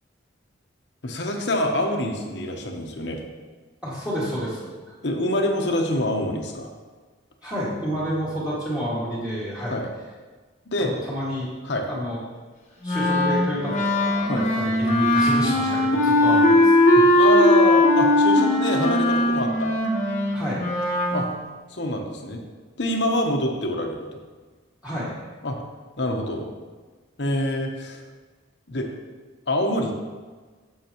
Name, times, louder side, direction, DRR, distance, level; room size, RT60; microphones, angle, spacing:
voice 1, 1.0-3.2 5.0-6.7 9.7-9.9 10.7-10.9 11.6-11.9 14.3-14.4 17.2-19.7 21.1-21.3 21.7-22.4 22.8-24.0 25.4-25.6 26.0-26.4 27.2-28.0 28.7-28.9 29.5-30.0, left 1 dB, 60° left, 2 dB, 1.1 m, -25 dB
voice 2, 3.8-4.7 7.4-9.8 10.8-11.5 11.9-12.2 12.8-16.7 17.1-17.2 20.3-20.6 24.8-25.1, equal, 5° right, -9 dB, 2.2 m, -29 dB
Wind instrument woodwind instrument, 12.8-21.2, left 1 dB, 35° left, 1.2 m, -19 dB
10.5 x 7.7 x 3.1 m, 1.4 s
head